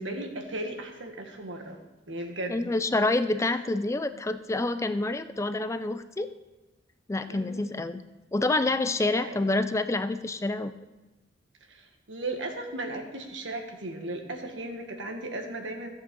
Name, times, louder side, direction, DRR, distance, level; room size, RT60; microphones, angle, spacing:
voice 1, 0.0-1.8 2.1-2.7 3.3-3.4 7.3-7.6 9.2-9.4 11.7-15.9, right 2 dB, 85° right, 4 dB, 1.7 m, -36 dB
voice 2, 2.5-6.3 7.1-8.0 8.3-10.7, left 2 dB, 15° left, 11 dB, 0.4 m, -27 dB
14.5 x 7.5 x 5.3 m, 1.1 s
head